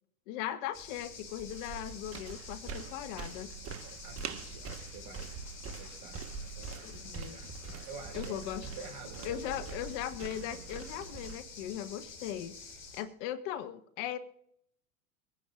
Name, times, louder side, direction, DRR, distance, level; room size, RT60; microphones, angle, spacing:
voice 1, 0.3-3.5 6.8-7.4 8.1-8.7 9.2-14.2, left 11 dB, 60° left, 12 dB, 1.2 m, -39 dB
sound 1, 0.7-13.0, left 4 dB, 30° left, 3.8 m, -49 dB
sound 2, 1.4-11.4, right 5 dB, 35° right, 1.3 m, -44 dB
voice 2, 4.0-5.4 5.7-9.9, right 4 dB, 50° right, 3 dB, 5.3 m, -49 dB
25.0 x 10.0 x 2.5 m, 0.70 s
hypercardioid pair, 95°, 41 cm